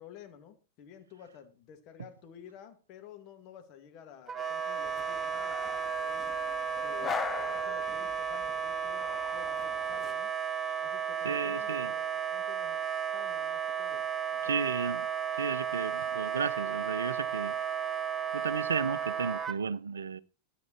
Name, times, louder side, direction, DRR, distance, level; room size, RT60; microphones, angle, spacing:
voice 1, 0.0-5.6 5.9-6.3 6.8-10.3 10.8-12.8 13.1-14.9, left 9 dB, 40° left, 2.3 m, -52 dB
Wind instrument woodwind instrument, 4.3-19.6, right 7 dB, 20° right, 0.9 m, -33 dB
sound 1, 4.8-10.1, left 8 dB, 25° left, 0.5 m, -42 dB
voice 2, 11.2-11.9 14.4-15.1 15.4-17.5 18.3-20.2, right 6 dB, 70° right, 0.5 m, -33 dB
13.5 x 9.2 x 4.5 m
figure-of-eight pair, 90°, 0 cm